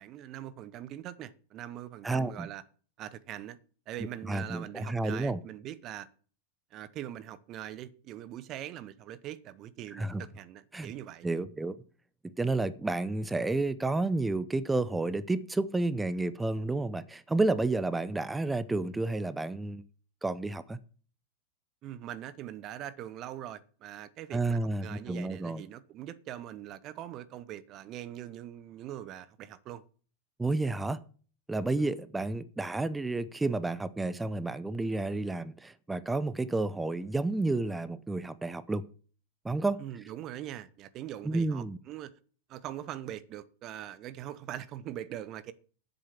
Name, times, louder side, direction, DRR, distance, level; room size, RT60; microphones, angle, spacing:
voice 1, 0.0-2.6 3.0-3.6 3.9-6.1 6.7-11.3 21.8-29.8 31.8-32.0 39.8-42.1 42.5-45.5, right 12 dB, 35° right, 0.9 m, -42 dB
voice 2, 2.0-2.5 4.3-5.4 10.0-10.2 10.7-10.9 11.2-11.8 12.4-19.8 20.2-20.8 24.3-25.6 30.4-31.0 31.5-38.8 39.4-39.8 41.2-41.8, right 2 dB, 10° right, 0.7 m, -30 dB
10.5 x 8.0 x 6.0 m
figure-of-eight pair, 90°, 0 cm